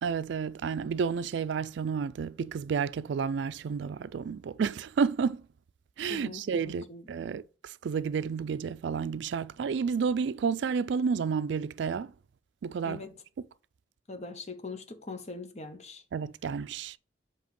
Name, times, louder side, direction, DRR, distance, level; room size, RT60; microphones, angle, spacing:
voice 1, 0.0-5.4 6.0-12.1 12.6-13.1 16.1-17.0, right 6 dB, 75° right, 0.3 m, -31 dB
voice 2, 6.1-7.3 12.8-13.2 14.1-16.0, left 3 dB, 35° left, 0.8 m, -42 dB
7.5 x 2.9 x 5.2 m
head